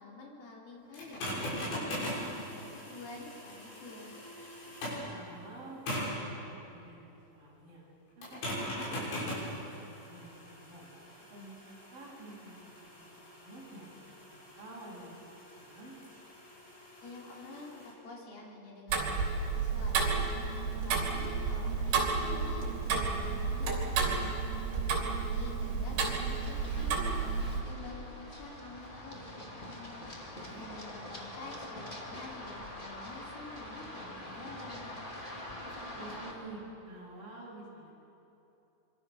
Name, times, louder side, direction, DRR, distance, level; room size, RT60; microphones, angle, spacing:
voice 1, 0.0-4.3 17.0-20.3 20.7-24.2 25.1-27.2 27.6-29.8 30.6-34.9, left 3 dB, 60° left, -3 dB, 5.3 m, -48 dB
sound 1, 0.9-5.1 5.9-6.3 8.2-17.9, equal, 80° left, 8.8 m, -41 dB
voice 2, 5.0-7.8 8.2-9.6 10.1-10.9 11.3-13.9 14.3-15.3 15.5-15.9 25.3-25.4 30.5-30.7 35.9-37.9, right 2 dB, 50° right, -5 dB, 9.1 m, -49 dB
Tick-tock, 18.9-27.6, right 5 dB, 80° right, 5.4 m, -31 dB
Run, 26.3-36.3, left 1 dB, 15° left, 1.8 m, -44 dB
25.5 x 25.0 x 6.4 m, 2.9 s
omnidirectional pair, 5.2 m